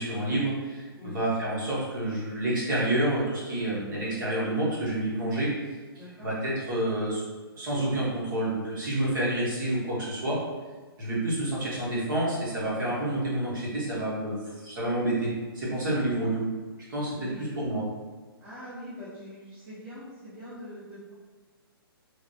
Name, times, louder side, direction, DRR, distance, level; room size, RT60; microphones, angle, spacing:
voice 1, 0.0-5.5 6.2-7.2 7.6-10.4 11.0-16.5 16.9-17.8, right 1 dB, 55° right, -7 dB, 1.4 m, -29 dB
voice 2, 6.0-6.3 15.8-16.3 17.1-17.4 18.4-21.1, equal, 15° right, -12 dB, 1.0 m, -43 dB
3.4 x 2.8 x 2.8 m, 1.4 s
hypercardioid pair, 155°, 13 cm